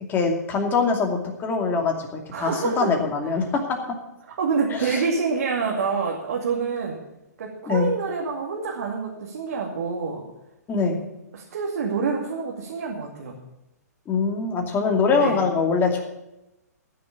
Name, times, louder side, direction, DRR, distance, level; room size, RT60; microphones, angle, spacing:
voice 1, 0.1-3.8 4.7-5.0 7.7-7.9 10.7-11.0 14.1-16.0, left 4 dB, 20° left, 2 dB, 2.5 m, -23 dB
voice 2, 2.3-2.9 4.4-7.0 7.4-10.2 11.3-13.4 15.1-15.4, right 5 dB, 60° right, -2 dB, 2.4 m, -27 dB
14.0 x 6.8 x 8.6 m, 0.92 s
hypercardioid pair, 125°, 9 cm